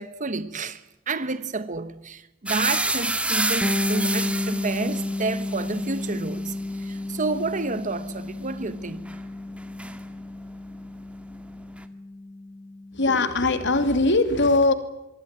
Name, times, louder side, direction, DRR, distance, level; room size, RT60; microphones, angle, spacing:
voice 1, 0.0-9.2, right 3 dB, 40° right, 1.1 m, -30 dB
sound 1, 2.5-10.4 10.7-11.8, right 2 dB, 5° right, 2.0 m, -30 dB
Bass guitar, 3.6-13.2, left 2 dB, 10° left, 1.2 m, -32 dB
voice 2, 12.9-14.7, left 2 dB, 60° left, 2.8 m, -20 dB
25.5 x 23.0 x 9.1 m
head